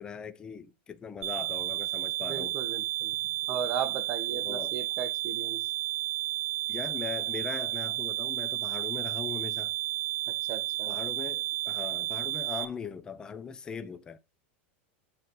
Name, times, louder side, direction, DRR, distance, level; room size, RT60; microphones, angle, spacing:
voice 1, 0.0-2.6 4.3-4.8 6.7-9.8 10.9-14.2, left 6 dB, 10° left, 0.7 m, -40 dB
sound 1, 1.2-12.6, right 15 dB, 70° right, 1.4 m, -32 dB
voice 2, 2.3-3.2 3.5-5.7 10.3-11.0, right 7 dB, 25° right, 1.3 m, -36 dB
9.0 x 4.1 x 5.5 m
supercardioid pair, 175°, 7 cm